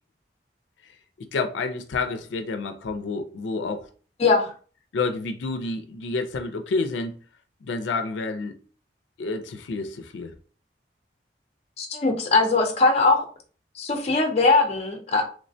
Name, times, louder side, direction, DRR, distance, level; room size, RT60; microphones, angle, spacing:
voice 1, 1.3-3.9 4.9-7.1 7.6-8.5 9.2-10.3, left 3 dB, 90° left, 0.4 m, -29 dB
voice 2, 4.2-4.5 11.8-13.2 13.8-15.2, left 3 dB, 35° left, 0.5 m, -20 dB
3.2 x 2.1 x 2.6 m
head